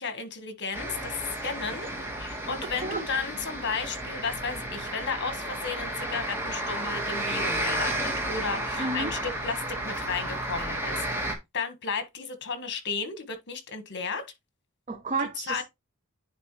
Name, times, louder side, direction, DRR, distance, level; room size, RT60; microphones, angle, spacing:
voice 1, 0.0-1.9 2.2-11.2 11.5-14.2 15.2-15.6, left 5 dB, 55° left, 1.4 m, -34 dB
sound 1, 0.7-11.3, right 1 dB, 10° right, 1.6 m, -32 dB
voice 2, 2.6-3.0 8.8-9.1 14.9-15.6, right 3 dB, 35° right, 0.7 m, -31 dB
9.7 x 3.5 x 3.1 m
head